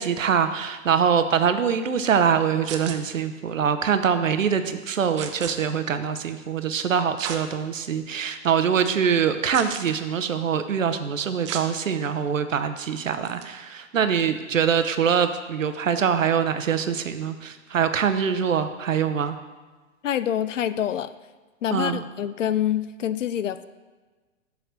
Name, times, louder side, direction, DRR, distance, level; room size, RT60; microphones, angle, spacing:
voice 1, 0.0-19.4 21.7-22.0, right 7 dB, 75° right, 9 dB, 0.8 m, -24 dB
sound 1, 2.6-3.0 5.2-5.5 7.2-7.4 8.0-8.1 9.5-9.9 11.4-11.7 13.2-13.4, right 8 dB, 25° right, 0.4 m, -34 dB
voice 2, 20.0-21.1 21.6-23.7, left 10 dB, 70° left, 14 dB, 0.5 m, -26 dB
7.1 x 4.3 x 6.4 m, 1.3 s
figure-of-eight pair, 110°, 40 cm